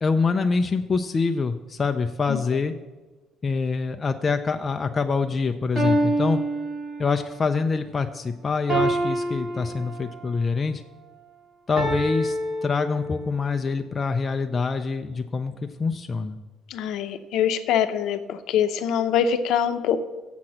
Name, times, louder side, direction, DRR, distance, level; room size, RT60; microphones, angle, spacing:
voice 1, 0.0-2.7 3.4-6.4 7.0-10.8 11.7-16.4, left 4 dB, 20° left, 6 dB, 0.3 m, -25 dB
sound 1, 5.8-7.4 8.7-10.3 11.8-13.4, right 1 dB, 20° right, 2.0 m, -26 dB
voice 2, 16.7-20.0, left 8 dB, 60° left, 10 dB, 0.7 m, -24 dB
7.6 x 6.0 x 7.2 m, 1.2 s
cardioid pair, 180°, 0 cm